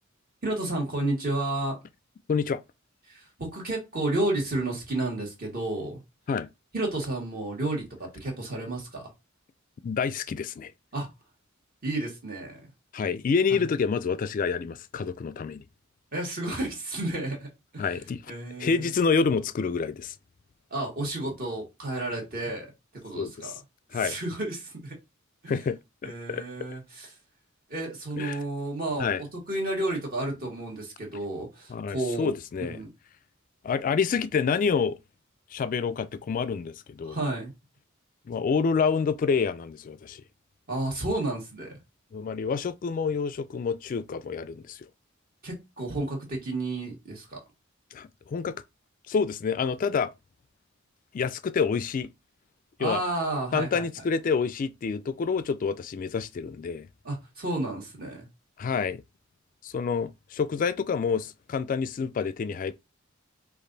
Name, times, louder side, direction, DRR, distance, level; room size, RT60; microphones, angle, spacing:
voice 1, 0.4-1.8 3.1-6.0 6.7-9.1 10.9-11.1 11.8-12.7 13.5-13.6 16.1-17.5 17.7-17.9 18.3-18.9 20.7-22.7 23.0-23.5 23.9-25.0 25.4-25.5 26.0-27.2 27.7-29.1 29.5-32.3 32.6-32.9 37.0-37.5 40.7-41.8 45.4-47.4 52.8-53.9 57.0-58.3, right 2 dB, 45° right, 1.5 m, -31 dB
voice 2, 2.3-2.6 6.3-6.5 9.8-10.7 12.9-15.6 17.8-18.3 18.6-20.1 23.2-23.5 23.9-24.2 25.5-26.4 28.2-28.4 29.0-29.2 31.7-32.8 33.6-35.0 35.5-37.2 38.3-40.2 42.1-44.9 47.9-48.5 49.1-50.1 51.1-52.1 52.8-53.0 53.5-56.9 58.6-59.0 59.6-62.7, left 5 dB, 40° left, 0.3 m, -28 dB
5.2 x 2.4 x 3.9 m
head